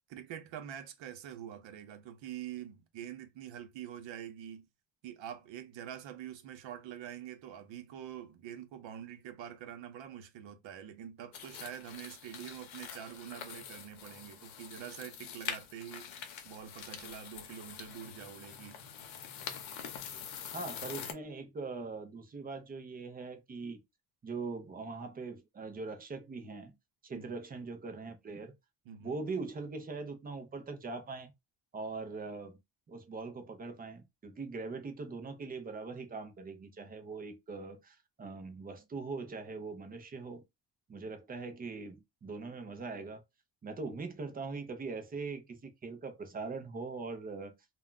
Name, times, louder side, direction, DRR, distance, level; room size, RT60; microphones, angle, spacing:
voice 1, 0.1-4.7 5.0-16.1 16.4-18.8 27.1-27.4 28.9-29.2 36.8-36.9, right 10 dB, 75° right, 0.7 m, -45 dB
sound 1, 11.3-21.1, left 8 dB, 85° left, 0.8 m, -45 dB
voice 2, 20.5-23.8 24.2-26.7 27.0-28.5 29.0-31.3 31.7-32.6 32.9-40.4 40.9-43.2 43.6-47.5, right 4 dB, 20° right, 0.4 m, -41 dB
2.2 x 2.2 x 3.6 m
cardioid pair, 165°, 46 cm